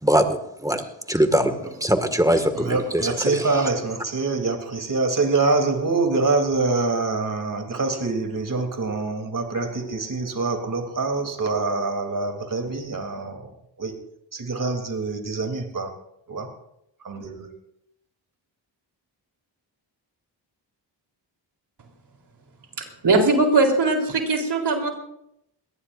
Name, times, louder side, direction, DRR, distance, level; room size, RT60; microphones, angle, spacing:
voice 1, 0.0-3.5, right 1 dB, 10° right, 2.0 m, -22 dB
voice 2, 2.5-14.0 14.3-15.9 16.3-16.5 17.0-17.5, right 3 dB, 45° right, 3.4 m, -25 dB
voice 3, 22.8-24.9, right 3 dB, 60° right, 4.0 m, -20 dB
22.5 x 18.5 x 2.7 m
cardioid pair, 65°, 46 cm